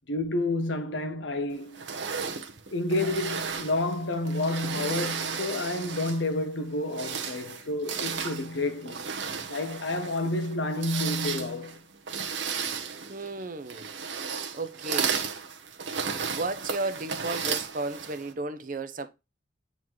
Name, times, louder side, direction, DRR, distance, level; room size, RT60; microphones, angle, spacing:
voice 1, 0.1-1.9 2.7-9.1 9.5-11.8, left 2 dB, 75° left, 1.0 m, -30 dB
sound 1, 1.7-6.3 6.8-18.3, right 6 dB, 75° right, 1.1 m, -34 dB
voice 2, 13.1-13.9 14.5-15.2 16.2-19.1, right 2 dB, 45° right, 0.8 m, -34 dB
8.9 x 4.1 x 3.1 m
head